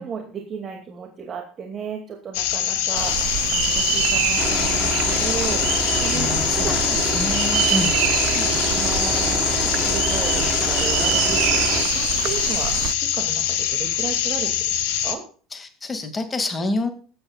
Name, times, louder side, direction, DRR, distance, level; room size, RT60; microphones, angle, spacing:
voice 1, 0.0-7.1 8.1-14.5 15.0-15.2, right 6 dB, 35° right, 3 dB, 2.4 m, -34 dB
sound 1, 2.3-15.2, left 10 dB, 65° left, 1.5 m, -24 dB
sound 2, 2.9-12.9, right 19 dB, 60° right, 0.5 m, -26 dB
sound 3, 4.4-11.8, right 1 dB, ahead, 3.8 m, -28 dB
voice 2, 6.1-8.0 15.5-16.9, left 2 dB, 25° left, 7 dB, 2.3 m, -28 dB
20.5 x 9.4 x 2.4 m, 0.41 s
hypercardioid pair, 70°, 0 cm